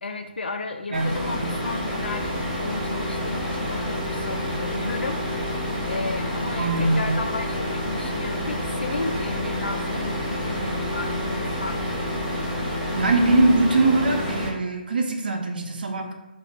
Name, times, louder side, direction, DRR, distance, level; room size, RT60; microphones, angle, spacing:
voice 1, 0.0-5.2 5.9-12.1, left 3 dB, 70° left, 5 dB, 0.3 m, -33 dB
sound 1, 0.9-14.5, left 1 dB, 5° left, 0.6 m, -28 dB
voice 2, 0.9-1.5 6.6-7.2 13.0-16.1, right 2 dB, 60° right, 3 dB, 0.5 m, -22 dB
2.5 x 2.0 x 3.4 m, 0.96 s
figure-of-eight pair, 145°, 6 cm